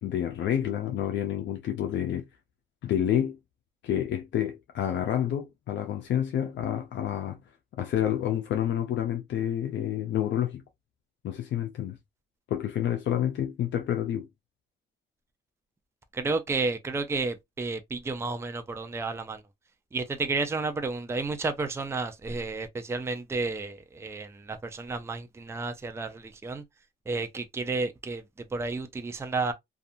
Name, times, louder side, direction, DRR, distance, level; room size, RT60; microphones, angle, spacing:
voice 1, 0.0-2.2 2.8-3.4 3.8-7.4 7.8-10.6 11.2-12.0 12.5-14.3, left 10 dB, 65° left, 0.5 m, -29 dB
voice 2, 16.1-19.4 19.9-26.6 27.1-28.2 28.5-29.5, right 3 dB, 15° right, 0.4 m, -31 dB
2.6 x 2.3 x 2.4 m
cardioid pair, 90°, 20 cm